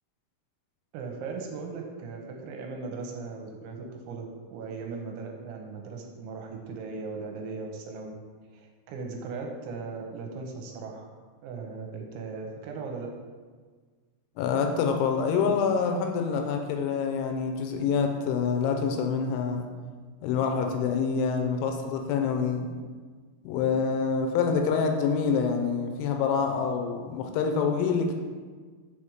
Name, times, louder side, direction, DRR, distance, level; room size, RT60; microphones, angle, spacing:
voice 1, 0.9-8.1 8.5-11.1 11.4-13.1, right 4 dB, 85° right, 2 dB, 2.9 m, -38 dB
voice 2, 14.4-19.7 20.2-22.7 23.4-28.1, left 5 dB, 80° left, 4 dB, 3.0 m, -26 dB
7.0 x 4.5 x 5.0 m, 1.5 s
omnidirectional pair, 5.6 m